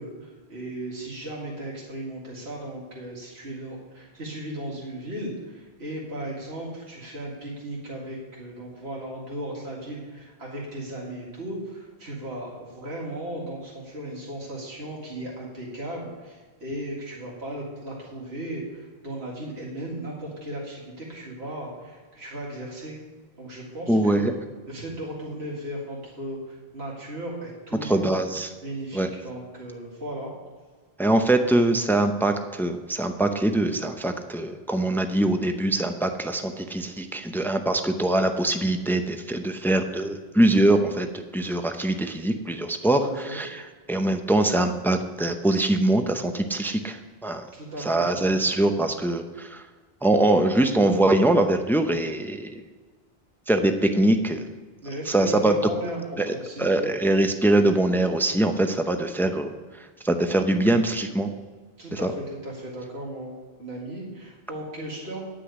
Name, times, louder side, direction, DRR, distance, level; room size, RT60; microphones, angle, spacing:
voice 1, 0.0-23.0 23.4-24.3 24.7-28.1 28.6-30.3 43.0-43.4 47.5-48.4 54.8-56.9 61.8-63.3 63.6-65.2, right 1 dB, 80° right, -4 dB, 2.3 m, -36 dB
voice 2, 23.9-24.3 27.8-28.5 28.9-29.1 31.0-43.1 43.3-43.5 43.9-47.5 47.8-49.6 50.0-52.6 53.5-54.4 55.1-55.6 56.2-59.5 60.0-61.3 61.9-62.1, right 1 dB, 5° left, 6 dB, 0.5 m, -23 dB
9.9 x 6.2 x 8.0 m, 1.4 s
omnidirectional pair, 1.1 m